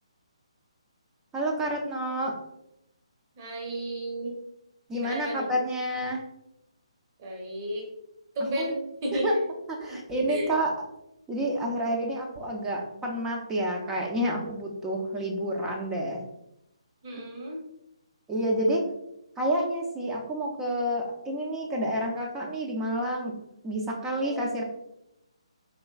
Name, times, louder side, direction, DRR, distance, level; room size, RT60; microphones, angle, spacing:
voice 1, 1.3-2.4 4.9-6.2 8.6-8.7 9.1-9.3 9.7-10.7 11.3-16.2 18.3-18.8 19.4-23.3 23.6-24.6, right 1 dB, 10° right, -1 dB, 0.5 m, -29 dB
voice 2, 3.4-4.3 5.0-5.5 7.2-7.9 8.3-9.3 10.3-10.6 17.0-17.6 24.2-24.6, right 1 dB, 30° right, -1 dB, 0.9 m, -33 dB
4.4 x 3.0 x 2.3 m, 0.85 s
figure-of-eight pair, 140°, 3 cm